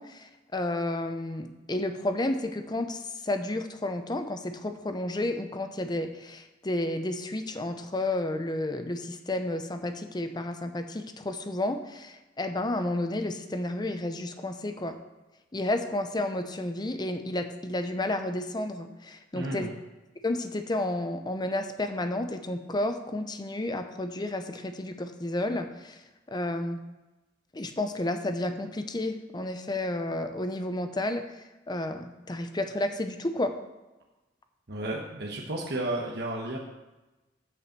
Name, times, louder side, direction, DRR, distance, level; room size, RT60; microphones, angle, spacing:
voice 1, 0.0-14.9 15.5-19.7 20.2-26.0 26.3-26.8 27.5-31.3 31.7-33.5, left 1 dB, 25° left, 7 dB, 0.7 m, -31 dB
voice 2, 19.3-19.7 34.7-36.6, right 1 dB, 65° right, -1 dB, 1.2 m, -32 dB
7.7 x 5.5 x 7.4 m, 1.1 s
head